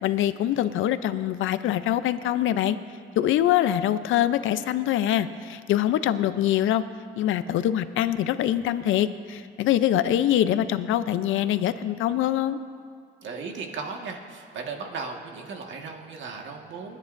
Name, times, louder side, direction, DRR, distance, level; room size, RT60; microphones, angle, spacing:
voice 1, 0.0-2.8 3.2-6.8 7.2-12.6, left 12 dB, 85° left, 13 dB, 0.6 m, -24 dB
voice 2, 13.2-17.0, right 4 dB, 70° right, 2 dB, 1.6 m, -36 dB
28.0 x 9.6 x 2.6 m, 2.2 s
cardioid pair, 90°, 20 cm